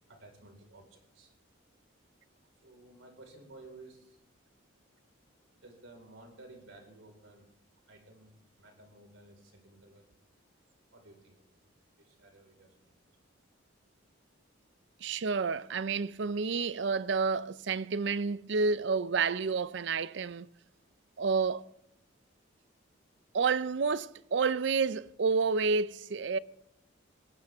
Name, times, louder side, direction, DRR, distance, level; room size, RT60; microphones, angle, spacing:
voice 1, 0.1-1.3 2.5-4.2 5.5-7.5 7.8-10.2 10.9-11.6 12.0-12.9, right 2 dB, 85° right, 4.7 m, -55 dB
voice 2, 15.0-20.5 21.2-21.6 23.3-26.4, right 4 dB, 65° right, 0.5 m, -29 dB
19.5 x 16.5 x 3.6 m
head